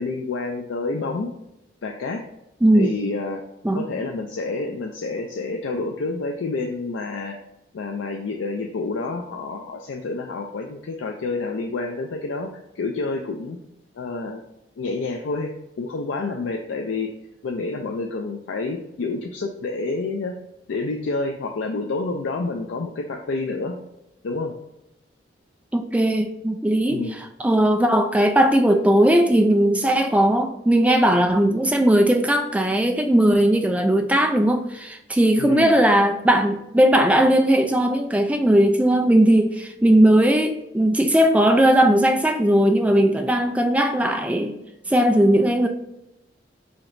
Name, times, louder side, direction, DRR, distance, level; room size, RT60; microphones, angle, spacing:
voice 1, 0.0-1.3 1.8-2.2 2.7-3.4 3.7-7.4 7.7-12.5 12.7-13.6 13.9-14.4 14.8-17.1 17.4-20.4 20.7-23.8 24.2-24.5 26.9-27.2 35.4-35.8, left 3 dB, 90° left, 0.4 m, -28 dB
voice 2, 2.6-3.0 3.6-3.8 25.7-44.6 44.9-45.7, right 1 dB, 5° right, 0.3 m, -18 dB
5.0 x 2.9 x 2.6 m
head